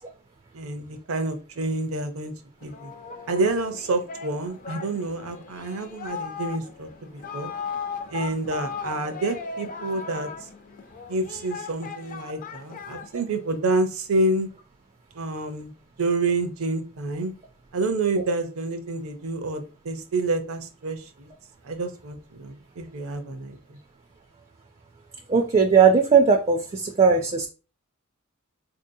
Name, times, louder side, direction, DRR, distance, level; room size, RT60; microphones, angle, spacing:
voice 1, 0.5-2.3 2.6-2.9 3.3-7.5 8.1-10.3 11.1-14.5 15.1-15.7 16.0-17.3 17.7-21.3 21.6-23.8, right 2 dB, 70° right, 8 dB, 0.6 m, -28 dB
Singing, 2.6-13.6, left 5 dB, 40° left, 0.4 m, -37 dB
voice 2, 25.3-27.5, right 5 dB, 30° right, 4 dB, 0.4 m, -18 dB
4.0 x 2.7 x 2.6 m, 0.34 s
head